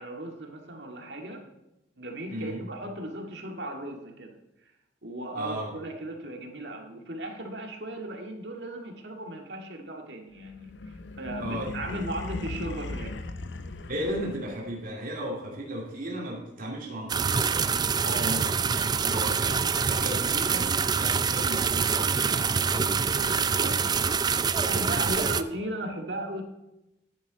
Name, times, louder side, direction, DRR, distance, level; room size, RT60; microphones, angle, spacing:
voice 1, 0.0-1.4 2.0-4.4 5.0-13.2 18.0-18.4 23.2-24.1 24.7-26.4, right 1 dB, 70° right, 3 dB, 2.0 m, -36 dB
voice 2, 2.3-2.6 5.3-5.7 11.4-11.7 13.9-17.7 18.2-20.7 21.0-23.7 24.4-25.3, equal, 50° right, -3 dB, 2.6 m, -36 dB
sound 1, 10.4-14.7, left 2 dB, 85° left, 0.8 m, -38 dB
sound 2, 17.1-25.4, right 6 dB, 25° right, 0.4 m, -25 dB
11.0 x 10.5 x 4.1 m, 0.89 s
head